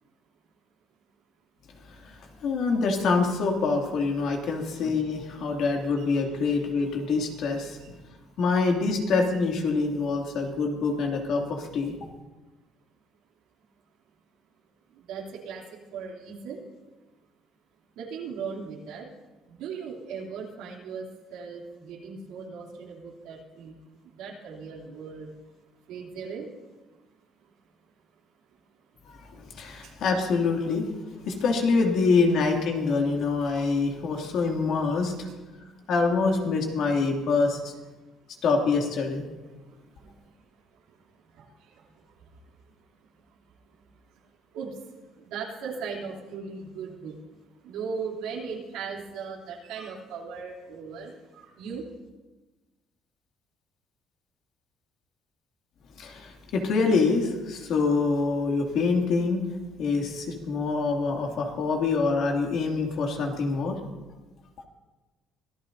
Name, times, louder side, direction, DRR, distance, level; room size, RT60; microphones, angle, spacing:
voice 1, 2.0-7.8 8.4-12.0 29.0-30.9 31.2-35.3 35.9-37.7 38.4-39.2 56.0-59.5 59.8-63.8, left 4 dB, 65° left, 1 dB, 2.5 m, -25 dB
voice 2, 14.9-16.6 17.9-19.1 19.5-23.8 24.0-25.4 25.9-26.6 27.4-27.5 29.4-30.0 35.3-35.9 39.5-43.4 43.7-51.9, right 5 dB, 90° right, -2 dB, 3.1 m, -39 dB
24.5 x 14.5 x 2.7 m, 1.2 s
cardioid pair, 130°, 0 cm